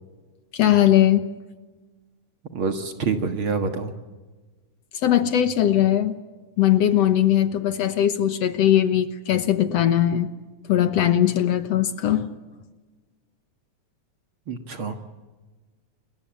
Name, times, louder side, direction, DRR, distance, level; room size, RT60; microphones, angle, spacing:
voice 1, 0.5-1.3 5.0-6.2 6.6-10.3 10.7-12.3, left 11 dB, 65° left, 10 dB, 2.0 m, -20 dB
voice 2, 2.5-3.9 14.5-15.0, right 4 dB, 50° right, 7 dB, 2.2 m, -26 dB
29.5 x 21.5 x 8.8 m, 1.3 s
omnidirectional pair, 3.4 m